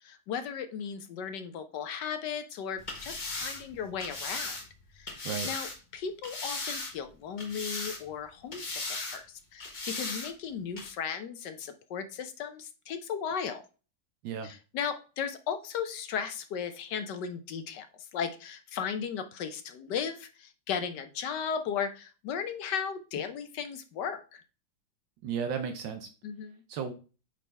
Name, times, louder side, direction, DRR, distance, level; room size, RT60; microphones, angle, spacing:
voice 1, 0.0-4.6 4.9-5.2 5.4-13.6 14.4-24.4 26.2-26.5, left 7 dB, 70° left, 9 dB, 1.2 m, -36 dB
sound 1, 2.8-5.8 6.2-7.1 7.4-8.2 8.5-9.2 9.6-10.3 10.8-10.9, left 3 dB, 30° left, 0.9 m, -37 dB
voice 2, 25.2-26.1 26.7-26.9, right 7 dB, 75° right, 7 dB, 1.4 m, -34 dB
8.6 x 3.9 x 3.3 m, 0.34 s
omnidirectional pair, 2.2 m